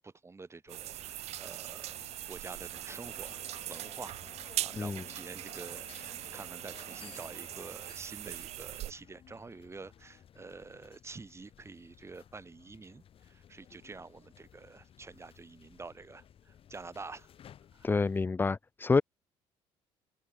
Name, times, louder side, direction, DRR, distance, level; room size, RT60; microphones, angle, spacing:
voice 1, 0.0-3.4 3.7-4.2 4.6-17.3 17.7-17.9, right 4 dB, 25° right, 6.9 m, -48 dB
sound 1, 0.7-18.3, left 9 dB, 55° left, 5.5 m, -59 dB
sound 2, 0.7-8.9, right 14 dB, 65° right, 1.0 m, -41 dB
sound 3, 2.9-7.9, left 6 dB, 35° left, 5.7 m, -55 dB
voice 2, 17.8-19.0, left 4 dB, 20° left, 0.5 m, -28 dB
open air
cardioid pair, 95°, 12 cm